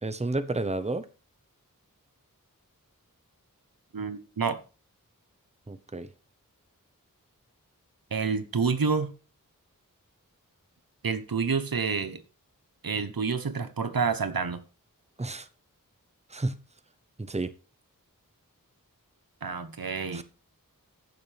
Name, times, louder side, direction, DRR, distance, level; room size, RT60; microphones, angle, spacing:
voice 1, 0.0-1.1 5.7-6.1 15.2-15.5 16.3-16.6 17.2-17.5 20.1-20.2, right 2 dB, 20° right, 0.8 m, -31 dB
voice 2, 3.9-4.6 8.1-9.1 11.0-12.2 12.8-14.6 19.4-20.2, right 5 dB, 85° right, 1.0 m, -28 dB
15.0 x 6.5 x 3.4 m
wide cardioid pair, 45°, 34 cm